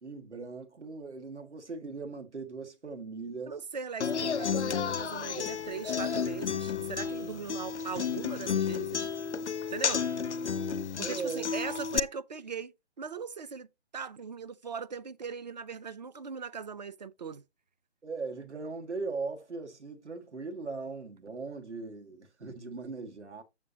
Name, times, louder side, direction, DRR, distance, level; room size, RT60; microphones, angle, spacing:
voice 1, 0.0-3.6 11.0-11.5 18.0-23.4, right 4 dB, 80° right, 2.0 m, -39 dB
voice 2, 3.5-9.1 9.7-10.1 11.0-13.7 13.9-17.4, right 5 dB, 40° right, 0.5 m, -39 dB
Human voice / Acoustic guitar, 4.0-12.0, left 6 dB, 80° left, 0.6 m, -32 dB
7.3 x 7.2 x 2.8 m
figure-of-eight pair, 140°, 34 cm